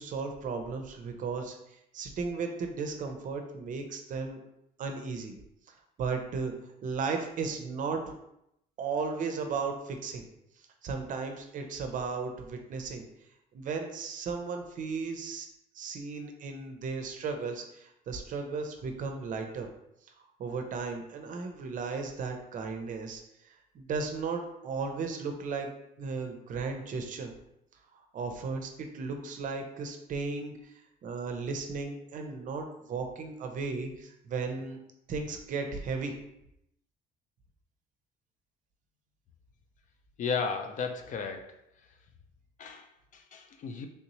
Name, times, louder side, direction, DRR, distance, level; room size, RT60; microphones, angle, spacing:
voice 1, 0.0-4.4 4.8-5.3 6.0-6.5 6.8-8.1 8.8-10.2 10.8-13.1 13.5-15.5 15.7-19.7 20.4-25.7 26.0-27.3 27.9-30.7 31.0-34.8 35.1-36.1, right 4 dB, 50° right, 5 dB, 0.6 m, -35 dB
voice 2, 40.2-41.5 42.6-43.9, left 5 dB, 50° left, 6 dB, 0.4 m, -34 dB
3.3 x 2.7 x 3.0 m, 0.80 s
cardioid pair, 110°, 17 cm